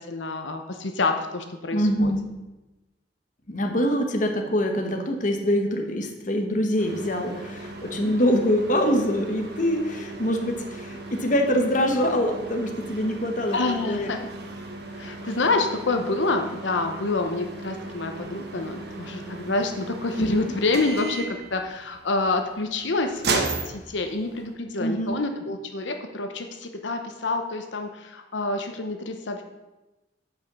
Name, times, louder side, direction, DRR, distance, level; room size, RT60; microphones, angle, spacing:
voice 1, 0.0-2.1 13.5-14.2 14.9-29.4, left 3 dB, 90° left, 5 dB, 0.9 m, -27 dB
voice 2, 1.7-2.3 3.5-14.3 20.2-20.6 24.8-25.2, equal, 45° left, 4 dB, 1.1 m, -24 dB
sound 1, 6.8-24.5, right 3 dB, 60° right, 1.3 m, -36 dB
8.7 x 5.6 x 6.1 m, 1.0 s
head